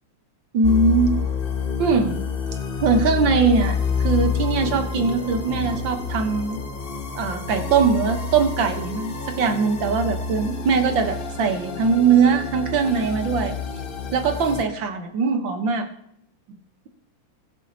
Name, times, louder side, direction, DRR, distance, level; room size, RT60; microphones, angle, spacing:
voice 1, 0.5-1.1 1.8-2.1 2.8-6.6 7.1-13.5 14.1-15.9, right 5 dB, 65° right, 6 dB, 1.8 m, -21 dB
sound 1, 0.6-14.6, left 5 dB, 60° left, 0.5 m, -28 dB
20.0 x 7.4 x 2.9 m, 0.72 s
omnidirectional pair, 2.4 m